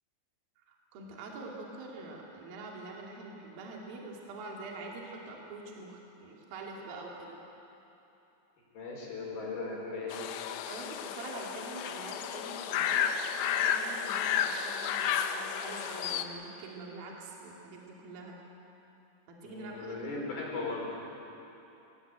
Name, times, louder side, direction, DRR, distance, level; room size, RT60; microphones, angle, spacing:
voice 1, 0.6-7.3 10.7-18.4 19.3-20.2, right 3 dB, 50° right, -2 dB, 4.0 m, -45 dB
voice 2, 8.7-10.3 19.4-20.9, left 3 dB, 50° left, -2 dB, 6.4 m, -38 dB
sound 1, 10.1-16.2, left 8 dB, 80° left, 3.3 m, -32 dB
25.5 x 18.0 x 8.9 m, 3.0 s
omnidirectional pair, 5.9 m